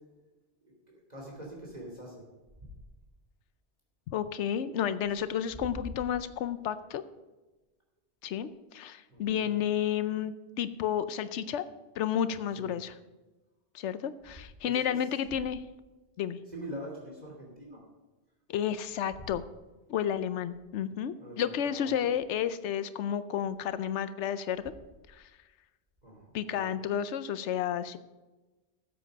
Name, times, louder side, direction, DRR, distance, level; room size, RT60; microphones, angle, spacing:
voice 1, 1.1-2.2 5.2-5.6 9.1-9.5 12.6-12.7 14.6-15.0 16.5-17.8 19.2-19.3 21.2-22.1 26.0-26.7, right 1 dB, 40° right, -2 dB, 2.9 m, -44 dB
voice 2, 4.1-7.0 8.2-11.7 12.0-12.9 13.7-15.6 16.2-16.4 18.5-19.4 19.9-24.6 25.1-25.3 26.3-28.0, left 9 dB, 90° left, 13 dB, 0.9 m, -31 dB
14.0 x 8.0 x 5.2 m, 1.2 s
omnidirectional pair, 1.2 m